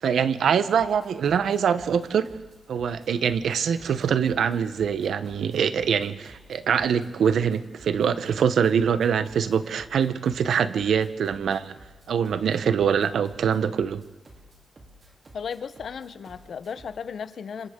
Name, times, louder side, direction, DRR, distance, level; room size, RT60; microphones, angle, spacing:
voice 1, 0.0-2.3 2.7-11.7 12.1-14.0, right 7 dB, 85° right, 13 dB, 0.8 m, -24 dB
sound 1, 0.8-17.1, right 1 dB, 40° right, 3.1 m, -52 dB
voice 2, 15.3-17.7, left 6 dB, 70° left, 13 dB, 0.8 m, -35 dB
27.5 x 25.5 x 3.7 m, 1.2 s
wide cardioid pair, 105°, 0 cm